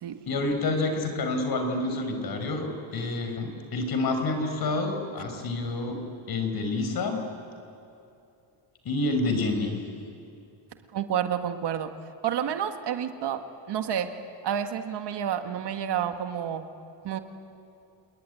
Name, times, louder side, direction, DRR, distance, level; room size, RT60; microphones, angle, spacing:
voice 1, 0.3-6.0 6.3-7.2 8.8-9.7, left 2 dB, 50° left, 6 dB, 4.8 m, -28 dB
voice 2, 10.9-11.9 12.2-14.2 14.4-16.7 17.0-17.2, right 9 dB, 60° right, 7 dB, 1.8 m, -29 dB
27.5 x 21.5 x 9.9 m, 2.6 s
cardioid pair, 135°, 45 cm